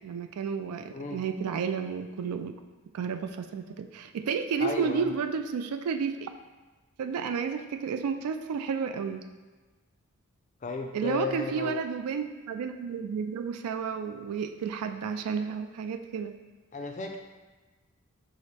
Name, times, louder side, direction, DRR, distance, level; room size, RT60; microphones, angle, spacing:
voice 1, 0.0-2.5 2.9-6.3 7.0-9.2 10.9-16.3, right 6 dB, 90° right, 8 dB, 0.3 m, -31 dB
voice 2, 0.9-1.2 4.6-5.1 10.6-11.8 16.7-17.2, left 3 dB, 35° left, 4 dB, 0.3 m, -34 dB
4.9 x 2.0 x 4.1 m, 1.3 s
head